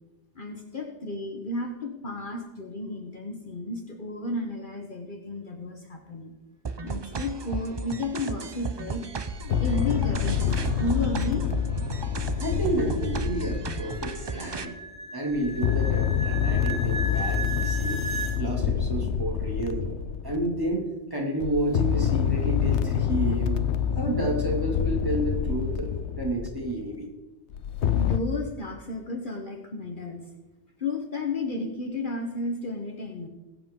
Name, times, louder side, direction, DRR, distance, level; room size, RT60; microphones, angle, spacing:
voice 1, 0.3-6.3 6.8-9.0 9.6-11.4 27.9-30.3 30.8-33.3, left 2 dB, 45° left, 2 dB, 1.3 m, -32 dB
sound 1, 6.6-14.6, right 4 dB, 40° right, 0.4 m, -35 dB
sound 2, 9.3-14.6 15.3-20.7 21.4-26.8 27.5-28.2, left 8 dB, 75° left, 1.0 m, -27 dB
sound 3, 11.4-18.4, right 3 dB, 65° right, 4.6 m, -36 dB
voice 2, 12.2-14.7 15.1-18.0 18.4-19.9 20.2-23.6 24.0-25.9 26.2-27.1, right 1 dB, 20° right, -1 dB, 2.4 m, -30 dB
21.0 x 7.9 x 3.7 m, 1.1 s
omnidirectional pair, 1.2 m